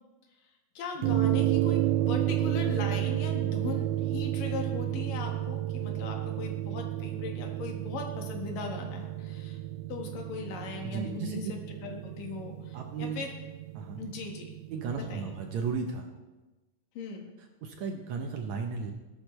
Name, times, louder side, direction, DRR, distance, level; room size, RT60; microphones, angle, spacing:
voice 1, 0.7-1.8 2.1-9.6 9.9-13.3 14.0-14.5 15.0-15.3 16.9-17.2, left 4 dB, 75° left, 2 dB, 3.2 m, -39 dB
sound 1, 1.0-15.6, right 14 dB, 85° right, 1.7 m, -31 dB
voice 2, 10.8-11.4 12.7-13.2 13.8-14.0 14.7-16.1 17.6-18.9, right 5 dB, 70° right, 3 dB, 1.9 m, -34 dB
17.5 x 11.5 x 3.2 m, 1.1 s
omnidirectional pair, 3.9 m